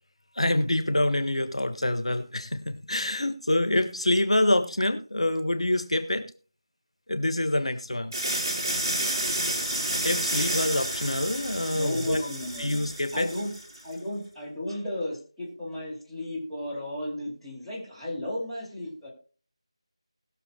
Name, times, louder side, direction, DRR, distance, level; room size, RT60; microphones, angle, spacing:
voice 1, 0.3-6.3 7.1-8.1 9.7-12.2 12.6-13.3, left 1 dB, 75° left, 8 dB, 1.5 m, -26 dB
sound 1, 8.1-13.8, right 1 dB, 30° right, 3.8 m, -30 dB
voice 2, 11.7-12.8 13.1-13.5 13.8-19.1, left 1 dB, ahead, -14 dB, 2.6 m, -34 dB
20.5 x 7.0 x 2.2 m, 0.40 s
figure-of-eight pair, 165°, 3 cm